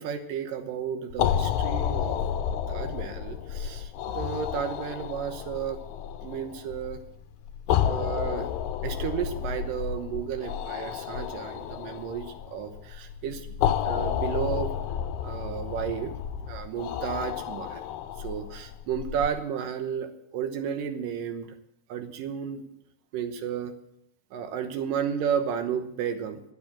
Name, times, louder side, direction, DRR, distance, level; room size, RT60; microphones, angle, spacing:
voice 1, 0.0-2.2 2.7-5.8 6.2-7.0 7.8-8.5 8.8-14.8 15.2-16.1 16.4-17.9 18.2-21.6 21.9-22.6 23.1-23.7 24.3-26.4, right 8 dB, 90° right, 8 dB, 2.7 m, -33 dB
sound 1, 1.1-19.3, left 9 dB, 75° left, 1.8 m, -31 dB
11.0 x 10.0 x 7.4 m, 0.77 s
omnidirectional pair, 3.8 m